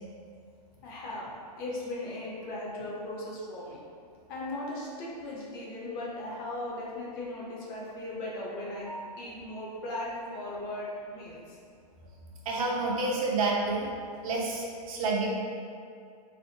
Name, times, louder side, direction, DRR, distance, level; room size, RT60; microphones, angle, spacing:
voice 1, 0.8-3.8 4.3-11.6, left 1 dB, 35° left, -5 dB, 0.7 m, -38 dB
voice 2, 8.8-9.4 12.4-13.9 14.2-15.3, right 3 dB, 60° right, -3 dB, 0.8 m, -29 dB
3.5 x 3.4 x 2.7 m, 2.3 s
hypercardioid pair, 160°, 21 cm